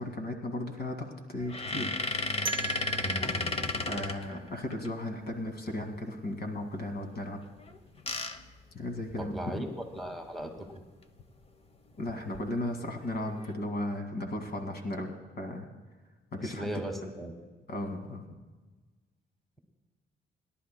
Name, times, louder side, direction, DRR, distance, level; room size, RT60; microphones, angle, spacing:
voice 1, 0.0-2.0 3.4-7.4 8.7-9.7 12.0-15.7 16.3-16.8 17.7-18.2, left 1 dB, 55° left, 4 dB, 2.1 m, -36 dB
sound 1, 1.4-4.9 7.6-9.5 10.0-10.1 10.4-10.6 12.1-12.4 13.0-13.5, left 3 dB, 30° left, 0.9 m, -34 dB
sound 2, 2.5-5.3, right 6 dB, 25° right, 0.4 m, -41 dB
voice 2, 3.0-3.9 9.2-9.7 9.9-10.8 16.4-17.3, right 1 dB, ahead, 2 dB, 1.9 m, -38 dB
27.5 x 11.0 x 2.2 m, 1.3 s
cardioid pair, 90°, 20 cm